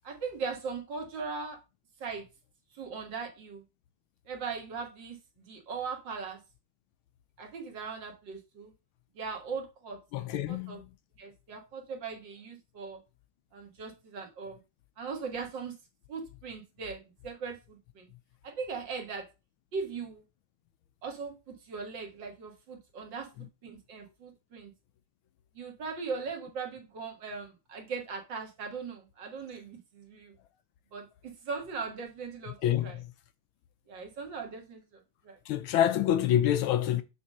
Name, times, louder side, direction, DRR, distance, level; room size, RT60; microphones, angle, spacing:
voice 1, 0.0-1.6 2.0-2.2 2.7-3.6 4.3-6.4 7.4-8.7 9.2-10.8 11.2-13.0 13.5-14.6 15.0-15.7 16.1-18.1 18.4-19.3 19.7-20.2 21.0-23.3 23.6-24.7 25.6-30.3 30.9-32.6 32.8-33.0 33.9-34.8 35.2-35.4, right 5 dB, 55° right, 2.2 m, -39 dB
voice 2, 10.1-10.9 32.6-33.0 35.5-37.0, left 11 dB, 80° left, 1.4 m, -27 dB
6.9 x 3.7 x 6.3 m
omnidirectional pair, 2.4 m